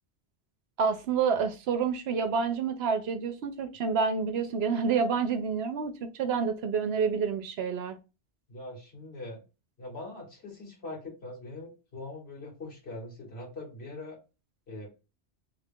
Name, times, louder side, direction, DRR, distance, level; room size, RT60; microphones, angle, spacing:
voice 1, 0.8-8.0, right 5 dB, 70° right, 0.8 m, -28 dB
voice 2, 8.5-9.4 9.8-14.2 14.7-14.9, left 2 dB, 65° left, 1.9 m, -42 dB
3.3 x 2.4 x 3.5 m
omnidirectional pair, 1.2 m